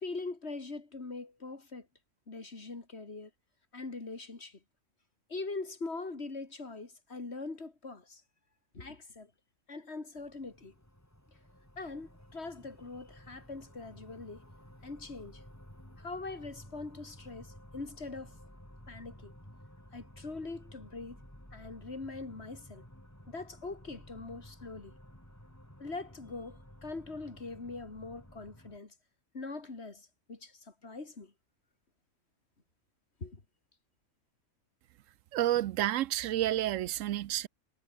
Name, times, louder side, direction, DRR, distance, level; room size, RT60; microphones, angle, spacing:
voice 1, 0.0-1.8 2.3-3.3 3.7-4.6 5.3-8.2 8.7-9.3 9.7-10.7 11.8-14.4 14.8-15.4 16.0-18.3 18.9-19.3 19.9-21.2 21.5-22.8 23.3-24.9 25.8-28.9 29.3-30.5 30.8-31.3 33.2-33.4, left 3 dB, 55° left, 3.0 m, -42 dB
sound 1, 10.2-28.8, equal, 10° left, 5.4 m, -54 dB
voice 2, 35.3-37.5, right 13 dB, 80° right, 0.9 m, -30 dB
omnidirectional pair, 1.3 m